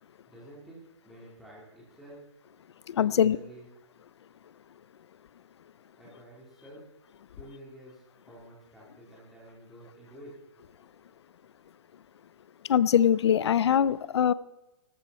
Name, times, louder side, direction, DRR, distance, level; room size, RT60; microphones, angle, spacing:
voice 1, 0.3-2.2 2.9-3.7 6.0-6.9 7.4-10.4, right 1 dB, ahead, -6 dB, 3.6 m, -50 dB
voice 2, 2.9-3.4 12.6-14.3, left 9 dB, 60° left, 19 dB, 0.6 m, -22 dB
17.5 x 13.5 x 4.3 m, 1.0 s
hypercardioid pair, 160°, 16 cm